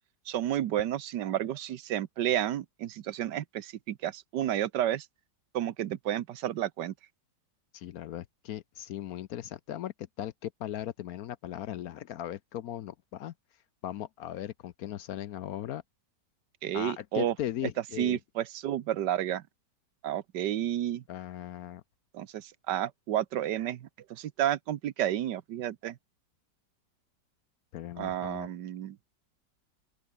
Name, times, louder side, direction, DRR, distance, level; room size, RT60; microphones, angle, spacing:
voice 1, 0.3-5.1 5.5-6.9 16.6-17.3 18.0-19.4 20.0-21.0 22.1-26.0 28.0-29.0, right 12 dB, 80° right, 1.5 m, -31 dB
voice 2, 7.7-13.3 13.8-15.8 16.7-18.2 21.1-21.8 27.7-28.5, left 12 dB, 65° left, 1.0 m, -38 dB
open air
omnidirectional pair, 1.9 m